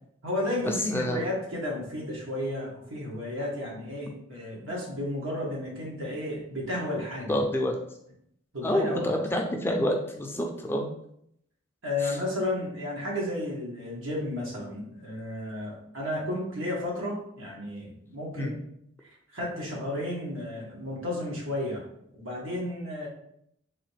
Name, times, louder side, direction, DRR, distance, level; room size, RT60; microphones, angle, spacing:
voice 1, 0.2-7.4 8.5-9.1 11.8-18.5 19.3-21.8 22.1-23.1, left 1 dB, 85° right, -3 dB, 1.5 m, -32 dB
voice 2, 0.9-1.3 7.3-7.7 8.6-10.8 12.0-12.2 18.4-18.5, equal, 10° left, 2 dB, 0.4 m, -27 dB
4.0 x 2.9 x 3.3 m, 0.71 s
head